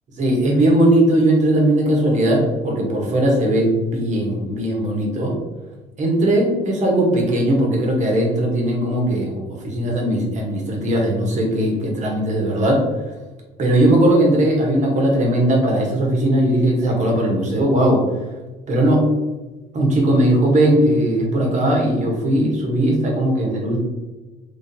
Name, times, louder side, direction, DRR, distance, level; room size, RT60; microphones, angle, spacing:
voice 1, 0.2-5.4 6.0-12.8 13.6-18.0 18.7-19.1 19.7-23.8, right 1 dB, 45° right, 0 dB, 1.2 m, -18 dB
3.7 x 3.4 x 2.7 m, 1.2 s
cardioid pair, 110°, 17 cm